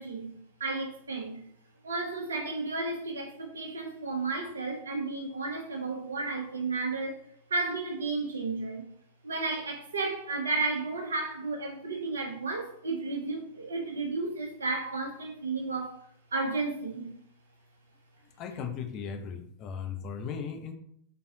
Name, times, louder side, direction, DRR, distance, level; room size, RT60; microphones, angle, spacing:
voice 1, 0.0-1.4 1.8-7.1 7.5-8.8 9.2-16.0 16.3-17.1, right 3 dB, 70° right, 0.9 m, -33 dB
voice 2, 18.4-20.7, left 6 dB, 35° left, 0.6 m, -37 dB
4.3 x 3.4 x 2.7 m
figure-of-eight pair, 90°, 0 cm